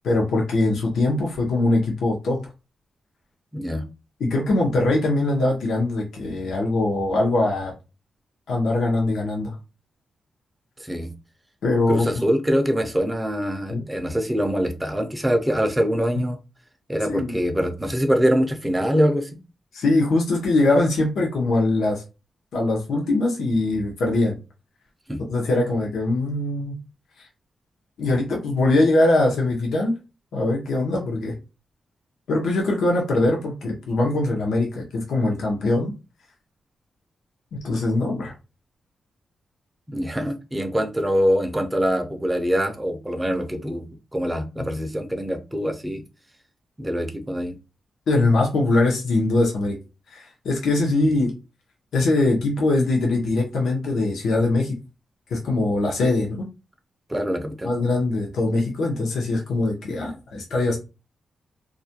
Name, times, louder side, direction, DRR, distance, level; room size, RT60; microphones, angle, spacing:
voice 1, 0.0-2.5 4.2-7.7 8.5-9.6 11.6-12.1 13.7-13.8 17.0-17.4 19.7-22.0 22.5-24.4 25.2-26.7 27.2-27.3 28.0-29.9 30.3-31.3 32.3-35.9 37.6-38.3 44.6-44.7 48.1-49.8 50.1-51.3 51.9-54.8 55.3-56.5 57.6-60.8, left 2 dB, 90° left, -1 dB, 0.6 m, -22 dB
voice 2, 3.5-3.8 10.8-11.1 11.9-16.4 16.9-19.3 25.1-25.2 39.9-46.0 46.8-47.6 57.1-57.7, equal, 10° right, 5 dB, 0.4 m, -24 dB
2.4 x 2.1 x 2.7 m, 0.29 s
wide cardioid pair, 150°, 0 cm